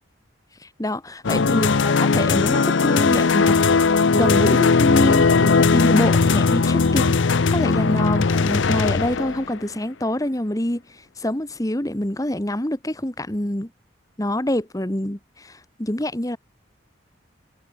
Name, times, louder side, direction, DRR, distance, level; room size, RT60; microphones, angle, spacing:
voice 1, 0.6-3.8 4.1-13.7 14.2-16.4, left 1 dB, 15° left, 1.4 m, -26 dB
sound 1, 1.2-9.6, left 4 dB, 75° left, 0.7 m, -18 dB
head